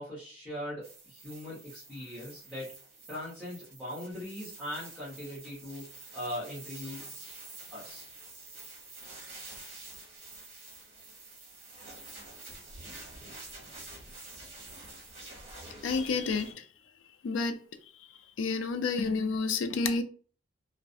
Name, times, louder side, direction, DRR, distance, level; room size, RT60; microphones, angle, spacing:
voice 1, 0.0-2.7 3.1-5.9 6.1-7.0 7.7-8.0, left 1 dB, 5° right, 0.9 m, -40 dB
sound 1, 0.8-16.5, right 2 dB, 35° right, 0.9 m, -48 dB
voice 2, 15.8-16.5 17.2-17.6 18.4-20.0, left 4 dB, 80° left, 0.4 m, -29 dB
2.3 x 2.1 x 2.6 m
head